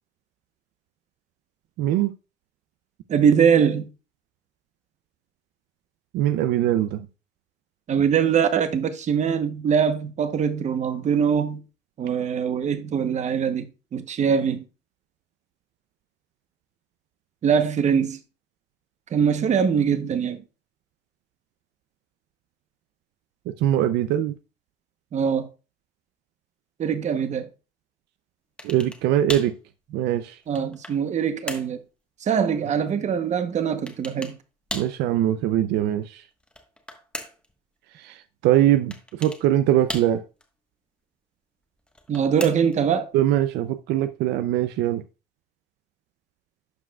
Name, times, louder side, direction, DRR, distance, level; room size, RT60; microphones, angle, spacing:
voice 1, 1.8-2.1 6.1-7.1 23.5-24.3 28.6-29.5 29.9-30.4 34.7-36.2 38.0-40.2 43.1-45.0, right 12 dB, 85° right, 0.5 m, -22 dB
voice 2, 3.1-3.9 7.9-11.6 12.0-14.6 17.4-18.2 19.1-20.4 25.1-25.5 26.8-27.5 30.5-31.8 32.2-34.3 42.1-43.1, right 7 dB, 45° right, 0.9 m, -22 dB
sound 1, 28.6-29.0 29.3-29.6 30.2-31.0 31.5-31.8 33.9-34.4 34.7-35.0 36.4-37.5 38.9-39.4 39.9-40.4 41.9-42.8, left 1 dB, 5° left, 1.2 m, -36 dB
11.5 x 4.8 x 2.3 m
cardioid pair, 110°, 17 cm